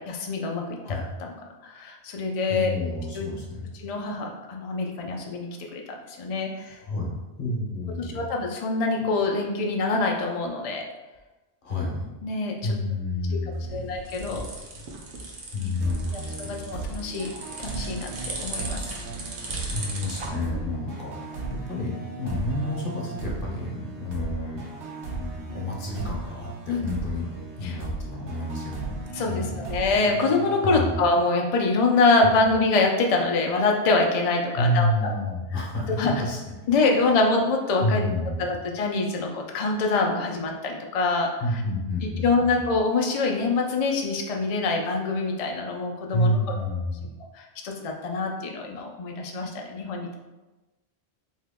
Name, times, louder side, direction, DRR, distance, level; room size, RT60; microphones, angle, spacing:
voice 1, 0.1-1.3 1.6-2.7 3.1-3.3 3.8-6.8 8.0-10.8 12.2-12.7 13.7-14.5 15.6-15.7 16.1-17.3 17.6-18.8 26.7-26.9 27.6-27.8 29.1-35.1 36.0-36.1 36.7-38.0 38.4-41.6 42.2-46.3 47.3-50.2, left 3 dB, 75° left, 1 dB, 0.3 m, -25 dB
voice 2, 2.5-3.7 6.7-7.1 7.4-8.3 11.6-12.1 12.6-13.9 15.5-16.8 19.7-21.4 21.7-24.6 25.1-27.3 27.6-29.0 29.3-29.9 30.6-31.0 34.6-36.4 37.8-38.4 41.4-42.7 46.1-47.1, left 1 dB, 55° left, -2 dB, 0.8 m, -29 dB
sound 1, 13.5-20.3, right 2 dB, 55° right, 0.8 m, -37 dB
sound 2, 15.8-31.3, right 3 dB, 90° right, 1.0 m, -37 dB
2.8 x 2.7 x 3.5 m, 1.1 s
omnidirectional pair, 1.2 m